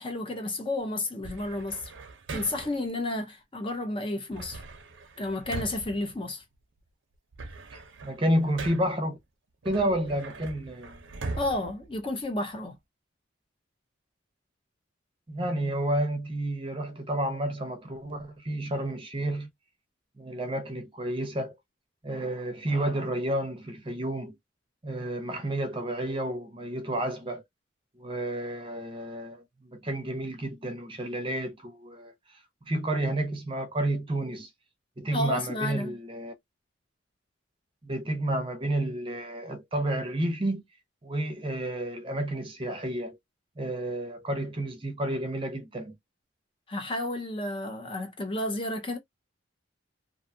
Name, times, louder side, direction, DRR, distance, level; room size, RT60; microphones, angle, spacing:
voice 1, 0.0-1.9 2.3-4.6 5.2-6.4 11.4-12.8 35.1-35.9 46.7-49.0, left 2 dB, 25° left, 0.5 m, -31 dB
sound 1, 1.2-2.9 4.3-6.8 7.1-9.1 9.6-12.7, right 3 dB, 70° right, 0.6 m, -41 dB
voice 2, 7.7-9.2 9.6-11.0 15.3-19.5 20.2-21.6 22.0-24.4 24.8-27.4 28.0-32.1 32.6-34.5 35.0-36.3 37.8-40.6 41.0-43.2 43.6-45.9, right 1 dB, 25° right, 0.6 m, -30 dB
2.5 x 2.3 x 2.6 m
head